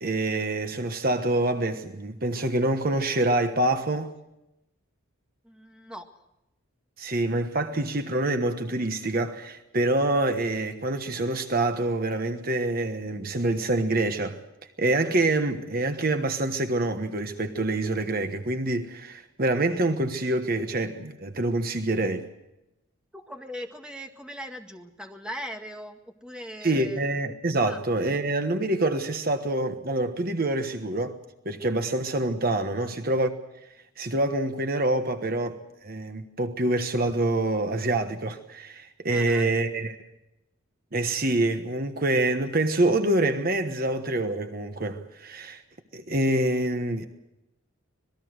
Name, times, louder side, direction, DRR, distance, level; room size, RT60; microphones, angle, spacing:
voice 1, 0.0-4.1 7.0-14.4 14.8-22.3 26.6-31.2 31.4-33.3 34.0-35.6 35.8-40.0 40.9-45.6 45.9-47.1, right 2 dB, 45° right, 1.2 m, -26 dB
voice 2, 5.4-6.1 23.1-27.0 27.6-27.8 32.8-33.0 39.1-39.5, equal, 5° right, 1.8 m, -40 dB
26.0 x 20.0 x 6.4 m
head